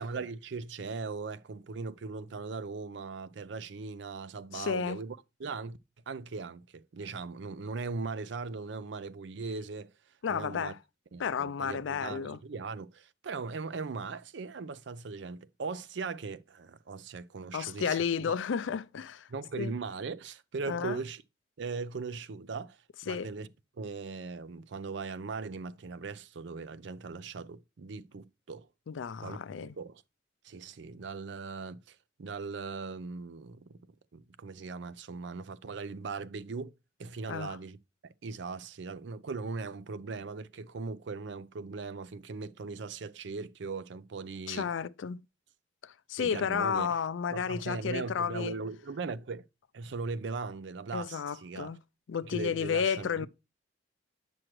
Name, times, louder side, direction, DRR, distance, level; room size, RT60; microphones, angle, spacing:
voice 1, 0.0-5.8 6.1-9.9 10.3-10.7 11.1-18.0 18.2-18.4 19.3-21.2 21.6-22.8 23.0-23.5 23.8-28.7 29.2-30.0 30.4-33.8 34.1-36.7 37.0-37.8 38.2-44.7 46.2-47.0 47.3-49.5 49.7-51.7 52.3-53.3, right 4 dB, 70° right, 0.5 m, -39 dB
voice 2, 4.5-5.0 10.2-10.8 11.2-12.4 17.5-19.3 19.6-19.7 20.7-21.0 23.1-23.3 28.9-29.8 37.3-37.6 44.5-45.2 45.8-48.6 50.9-51.8 52.1-53.3, left 7 dB, 90° left, 0.4 m, -32 dB
8.8 x 6.1 x 3.1 m
head